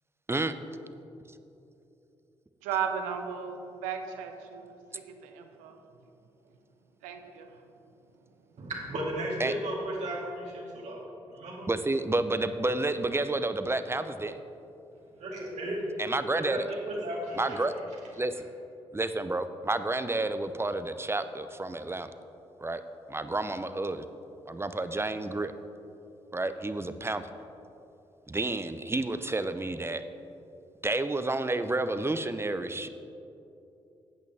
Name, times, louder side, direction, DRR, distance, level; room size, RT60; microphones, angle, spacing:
voice 1, 2.6-5.8 7.0-7.5, right 7 dB, 85° right, 0.7 m, -35 dB
voice 2, 8.6-11.0 11.3-11.7 15.2-15.8 16.3-17.6, right 1 dB, 65° right, 2.3 m, -35 dB
voice 3, 11.7-14.4 16.0-16.7 17.4-17.7 18.1-18.5 18.9-22.1 22.6-22.8 23.1-24.1 24.5-25.5 26.3-27.3 28.3-30.0 30.8-32.9, right 2 dB, 20° right, 0.7 m, -30 dB
13.0 x 8.4 x 3.5 m
hypercardioid pair, 40°, 13 cm